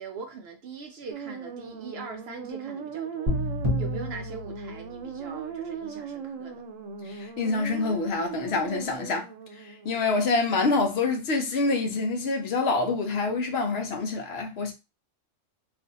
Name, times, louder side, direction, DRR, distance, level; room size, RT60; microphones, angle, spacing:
voice 1, 0.0-3.4 3.8-6.6, right 4 dB, 65° right, 0.7 m, -41 dB
sound 1, 1.1-10.0, right 7 dB, 85° right, 1.0 m, -38 dB
sound 2, 3.3-5.4, left 1 dB, 30° right, 0.7 m, -30 dB
voice 2, 7.1-9.3 9.6-14.7, left 3 dB, 65° left, 0.8 m, -26 dB
2.4 x 2.4 x 4.0 m
omnidirectional pair, 1.3 m